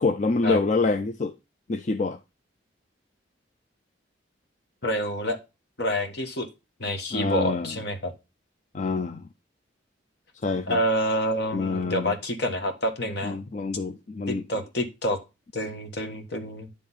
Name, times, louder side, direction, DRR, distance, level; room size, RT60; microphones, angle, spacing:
voice 1, 0.0-1.3 1.7-2.2 7.1-7.8 8.7-9.3 10.4-10.8 11.5-12.2 13.2-14.5, left 3 dB, 40° left, 0.4 m, -26 dB
voice 2, 4.8-5.4 5.8-6.5 6.8-8.1 10.7-13.4 14.3-15.2 15.5-16.7, equal, 60° left, 1.5 m, -27 dB
10.0 x 3.4 x 5.6 m
head